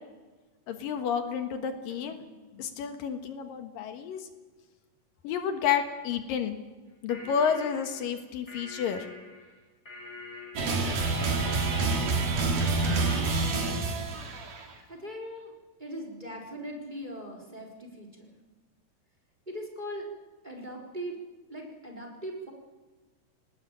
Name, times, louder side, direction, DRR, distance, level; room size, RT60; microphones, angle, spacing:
voice 1, 0.7-4.2 5.2-6.6 7.0-9.1, left 7 dB, 80° left, 7 dB, 3.1 m, -30 dB
sound 1, 6.9-13.8, left 3 dB, 20° left, 5.5 m, -45 dB
sound 2, 10.6-14.7, right 3 dB, 65° right, 4.2 m, -27 dB
voice 2, 14.9-15.5 15.8-18.3 19.5-20.1 20.4-21.2 21.5-22.5, equal, 15° right, 0 dB, 3.8 m, -40 dB
20.5 x 19.0 x 8.9 m, 1.3 s
omnidirectional pair, 4.0 m